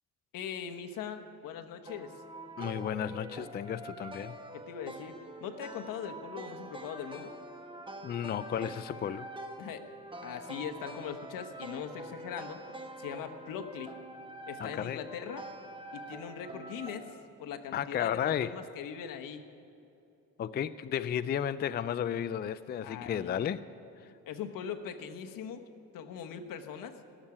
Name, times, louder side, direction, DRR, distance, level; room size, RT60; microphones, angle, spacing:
voice 1, 0.3-2.2 4.5-7.3 9.6-9.9 10.2-12.6 13.0-13.9 14.5-15.5 15.9-17.1 17.4-19.5 22.8-23.5 24.3-25.6 25.9-27.0, left 8 dB, 75° left, 6 dB, 1.2 m, -41 dB
sound 1, 1.8-17.1, right 1 dB, 15° right, 1.2 m, -45 dB
voice 2, 2.6-4.3 8.0-9.3 14.6-15.0 17.7-18.5 20.4-23.6, left 9 dB, 30° left, 14 dB, 0.4 m, -33 dB
18.0 x 7.4 x 9.7 m, 2.8 s
cardioid pair, 105°, 33 cm